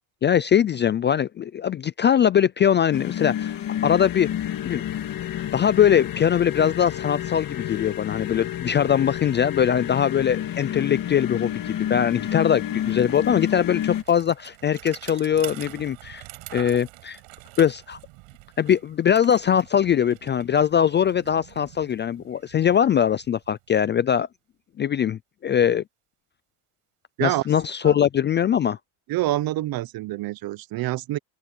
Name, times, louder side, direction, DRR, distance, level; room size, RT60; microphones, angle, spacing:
voice 1, 0.2-4.3 4.7-5.0 5.3-16.2 16.5-17.2 17.6-18.0 18.6-24.3 24.8-25.8 27.2-28.8, left 9 dB, 25° left, 0.3 m, -21 dB
sound 1, 2.9-14.0, left 11 dB, 45° left, 2.0 m, -30 dB
Bicycle, 10.6-10.7 11.0-23.9, right 23 dB, 80° right, 6.5 m, -46 dB
voice 2, 29.1-31.2, right 16 dB, 50° right, 0.7 m, -26 dB
open air
cardioid pair, 125°, 47 cm